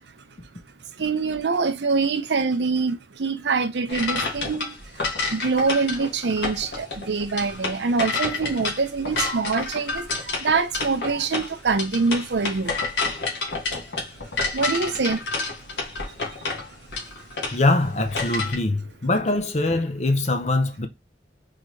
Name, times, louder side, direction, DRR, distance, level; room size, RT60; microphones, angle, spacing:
voice 1, 1.0-12.7 14.5-15.3 15.9-16.5, right 4 dB, 70° right, 0.6 m, -25 dB
sound 1, 3.9-18.5, left 3 dB, 70° left, 1.5 m, -29 dB
voice 2, 17.5-20.9, left 2 dB, 40° left, 0.7 m, -23 dB
4.0 x 3.3 x 3.1 m
head